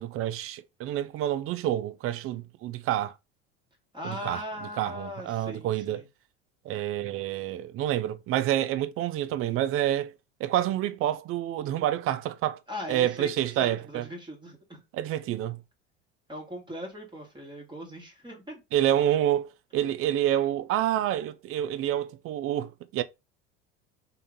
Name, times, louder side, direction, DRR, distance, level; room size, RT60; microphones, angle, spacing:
voice 1, 0.0-3.1 4.0-4.4 4.8-6.0 6.7-10.1 10.4-12.6 12.9-14.1 14.9-15.6 18.7-23.0, right 12 dB, 45° right, 0.5 m, -28 dB
voice 2, 3.9-6.0 12.7-14.8 16.3-18.6, equal, 15° right, 1.5 m, -39 dB
3.8 x 2.7 x 3.6 m
hypercardioid pair, 75°, 32 cm